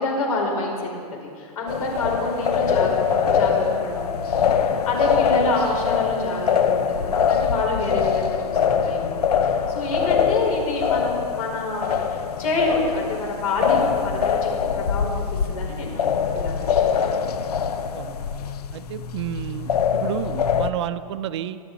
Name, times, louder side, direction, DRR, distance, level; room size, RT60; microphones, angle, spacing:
voice 1, 0.0-4.5 4.8-14.5 14.7-17.1, left 2 dB, 70° left, 0 dB, 5.0 m, -28 dB
sound 1, 1.7-20.7, left 7 dB, 90° left, 0.9 m, -23 dB
voice 2, 18.7-21.6, right 11 dB, 45° right, 11 dB, 0.7 m, -31 dB
26.0 x 11.5 x 4.1 m, 2.3 s
hypercardioid pair, 165°, 19 cm